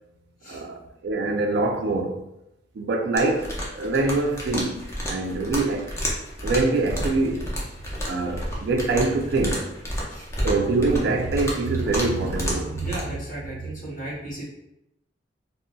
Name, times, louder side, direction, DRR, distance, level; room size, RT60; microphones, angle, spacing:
voice 1, 0.4-2.2 2.8-5.9 6.4-7.5 8.1-9.7 10.4-12.9, right 3 dB, 65° right, 0.4 m, -24 dB
sound 1, 3.1-13.0, equal, 15° left, 0.5 m, -31 dB
voice 2, 12.8-14.4, right 1 dB, 45° left, 1.0 m, -35 dB
3.8 x 2.0 x 2.2 m
head